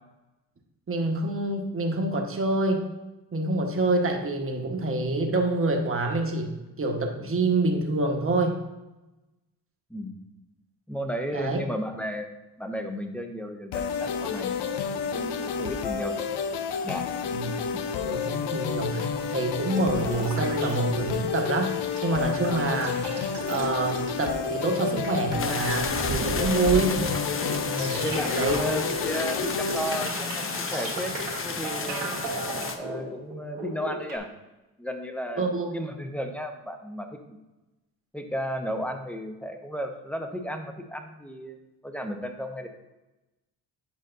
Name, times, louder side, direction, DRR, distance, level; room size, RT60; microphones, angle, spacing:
voice 1, 0.9-2.9 3.3-8.6 11.3-11.6 17.3-17.5 18.0-23.1 23.5-27.0 27.6-28.0 28.3-28.6 35.4-35.7, right 2 dB, 30° right, 2 dB, 1.2 m, -27 dB
voice 2, 10.9-12.3 12.6-14.7 15.1-16.4 16.8-17.0 17.3-18.1 27.9-30.4 30.7-31.1 31.4-32.1 32.7-34.3 34.8-37.4 38.1-42.7, equal, 5° left, 5 dB, 0.8 m, -34 dB
sound 1, 13.7-29.9, left 6 dB, 70° left, 0.6 m, -30 dB
sound 2, 19.8-21.4 21.7-34.2, right 4 dB, 75° right, 1.5 m, -36 dB
sound 3, 25.4-32.8, left 5 dB, 30° left, 0.7 m, -32 dB
9.0 x 5.1 x 2.6 m, 1.0 s
supercardioid pair, 75°, 42 cm